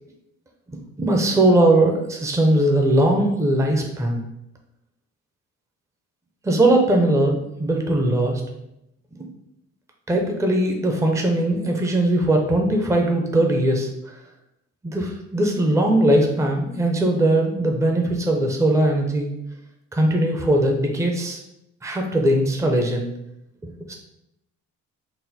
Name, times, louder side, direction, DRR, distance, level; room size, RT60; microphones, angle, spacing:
voice 1, 1.0-4.2 6.4-8.4 10.1-14.1 14.8-19.3 19.9-21.4 21.8-23.1 23.6-23.9, right 1 dB, 10° right, 2 dB, 0.6 m, -20 dB
4.0 x 2.1 x 4.1 m, 0.82 s
cardioid pair, 90°, 30 cm